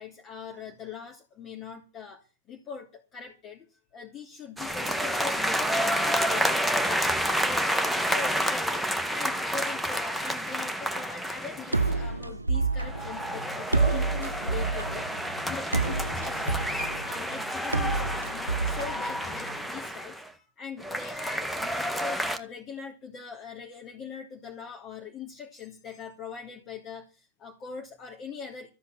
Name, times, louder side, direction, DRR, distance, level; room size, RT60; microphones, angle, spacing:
voice 1, 0.0-7.1 7.4-28.7, left 5 dB, 30° left, 2 dB, 3.0 m, -42 dB
sound 1, 4.6-12.1 12.8-20.3 20.8-22.4, equal, ahead, 1.8 m, -29 dB
sound 2, 11.7-19.6, right 3 dB, 85° right, 0.7 m, -29 dB
14.5 x 8.4 x 7.7 m, 0.32 s
figure-of-eight pair, 90°, 0 cm